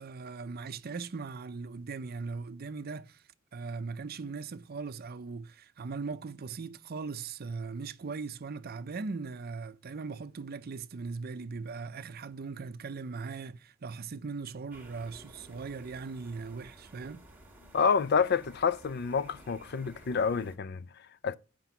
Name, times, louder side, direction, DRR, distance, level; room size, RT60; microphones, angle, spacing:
voice 1, 0.0-3.2 3.5-17.3, right 4 dB, 50° right, 0.5 m, -39 dB
sound 1, 14.7-20.6, right 1 dB, 10° right, 1.4 m, -54 dB
voice 2, 17.7-21.4, left 6 dB, 55° left, 0.5 m, -28 dB
7.6 x 5.1 x 6.8 m
head